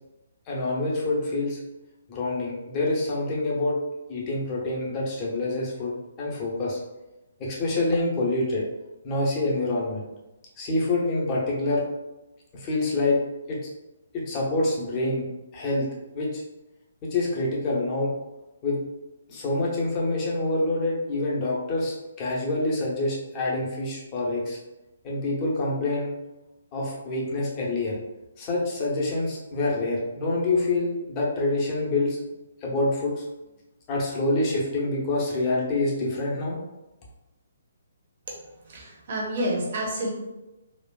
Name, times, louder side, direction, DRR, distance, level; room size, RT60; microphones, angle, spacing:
voice 1, 0.5-1.6 2.1-3.8 4.1-6.8 7.4-8.6 9.0-10.0 10.6-11.8 12.5-13.2 13.5-13.6 14.1-15.3 15.5-15.9 16.1-16.4 17.0-18.1 18.6-18.8 19.3-24.6 25.0-26.1 26.7-28.0 28.4-32.2 32.6-33.2 33.9-36.6, left 2 dB, 25° left, -4 dB, 0.9 m, -26 dB
voice 2, 38.7-40.1, right 1 dB, 45° right, -2 dB, 1.1 m, -29 dB
4.2 x 2.4 x 2.4 m, 1.0 s
figure-of-eight pair, 130°, 0 cm